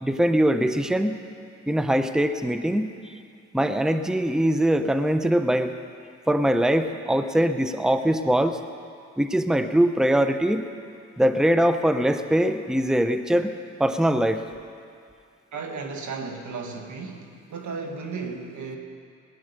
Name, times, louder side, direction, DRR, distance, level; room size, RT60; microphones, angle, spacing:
voice 1, 0.0-1.2 1.7-2.9 3.5-5.7 6.3-8.6 9.2-10.6 11.2-14.4, right 1 dB, ahead, 9 dB, 0.8 m, -22 dB
voice 2, 15.5-18.8, right 4 dB, 80° right, 3 dB, 1.8 m, -34 dB
18.0 x 10.5 x 6.8 m, 2.3 s
cardioid pair, 65°, 29 cm